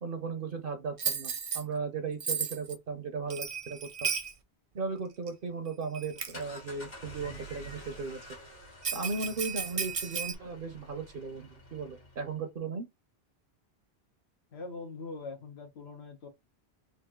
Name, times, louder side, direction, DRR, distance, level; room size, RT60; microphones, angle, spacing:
voice 1, 0.0-4.1 4.7-8.2 8.9-12.9, right 4 dB, 60° right, 0.9 m, -36 dB
Bell, 1.0-1.6 2.2-2.8 3.3-4.3 5.3-5.4 5.9-6.4 8.8-10.3, right 6 dB, 40° right, 0.5 m, -34 dB
sound 1, 6.0-12.4, equal, 60° left, 2.0 m, -49 dB
voice 2, 14.5-16.3, left 3 dB, 75° left, 1.3 m, -42 dB
3.8 x 2.5 x 3.5 m
omnidirectional pair, 1.1 m